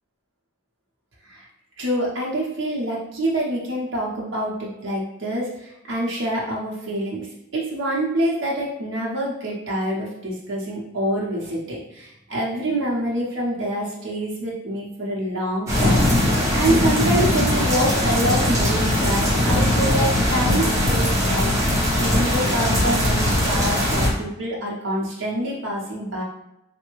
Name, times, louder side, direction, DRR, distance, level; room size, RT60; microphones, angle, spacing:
voice 1, 1.8-7.3 7.5-26.2, right 1 dB, 75° right, -4 dB, 0.8 m, -26 dB
sound 1, 15.7-24.1, left 1 dB, 15° right, 0.9 m, -20 dB
3.3 x 2.1 x 3.1 m, 0.85 s
head